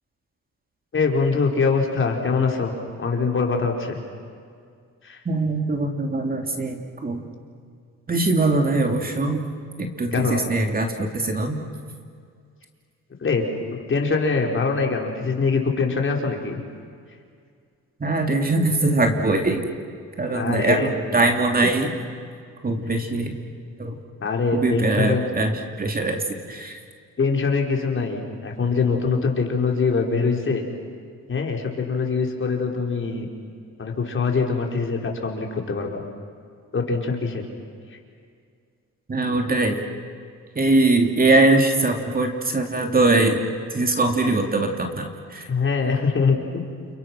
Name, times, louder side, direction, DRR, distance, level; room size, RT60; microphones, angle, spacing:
voice 1, 0.9-2.7 3.0-4.0 5.0-5.2 10.1-10.4 13.2-16.6 20.3-20.9 21.6-21.7 24.2-25.2 27.2-30.6 31.3-33.3 33.8-36.0 36.7-37.4 37.9-38.0 45.4-46.6, left 4 dB, 40° left, 1 dB, 4.6 m, -23 dB
voice 2, 5.2-7.3 8.1-9.5 9.8-11.6 18.0-19.7 20.2-21.9 22.6-23.4 23.8-24.0 24.5-25.5 25.8-26.8 39.1-39.8 40.5-43.4 43.7-45.4, right 2 dB, 30° right, 3 dB, 2.9 m, -22 dB
29.0 x 29.0 x 6.2 m, 2.2 s
cardioid pair, 90°, 30 cm